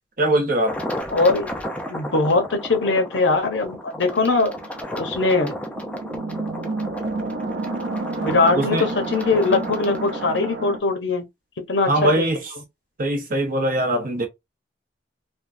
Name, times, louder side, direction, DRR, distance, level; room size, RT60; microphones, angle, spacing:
voice 1, 0.2-0.7 8.5-8.8 11.9-12.4 13.0-14.3, right 1 dB, 50° right, 0.8 m, -21 dB
sound 1, 0.7-10.5, equal, 10° left, 0.5 m, -33 dB
voice 2, 1.1-1.5 1.9-4.5 4.9-5.5 8.2-11.2 11.7-12.3, left 3 dB, 70° left, 0.8 m, -21 dB
sound 2, 4.0-10.8, right 3 dB, 80° right, 0.5 m, -30 dB
3.4 x 2.2 x 2.6 m
head